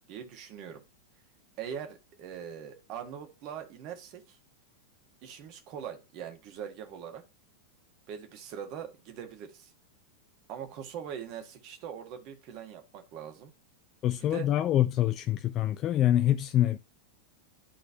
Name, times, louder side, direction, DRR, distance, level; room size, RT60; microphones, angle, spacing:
voice 1, 0.1-0.8 1.6-4.4 5.2-7.2 8.1-9.7 10.5-13.5 14.3-14.5, right 8 dB, 40° right, 1.6 m, -42 dB
voice 2, 14.0-16.8, left 12 dB, 35° left, 0.4 m, -25 dB
11.5 x 3.9 x 2.8 m
figure-of-eight pair, 90°, 0 cm